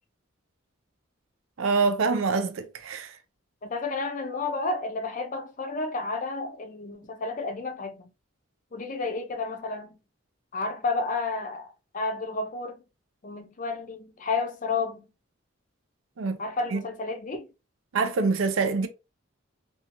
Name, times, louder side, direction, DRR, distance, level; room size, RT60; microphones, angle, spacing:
voice 1, 1.6-3.1 16.2-16.4 16.7-16.8 17.9-18.9, right 4 dB, 80° right, 0.5 m, -25 dB
voice 2, 3.6-8.0 8.7-10.0 10.5-11.7 11.9-12.8 13.2-15.0 16.4-17.5, left 3 dB, 40° left, 0.5 m, -31 dB
2.6 x 2.4 x 2.8 m
head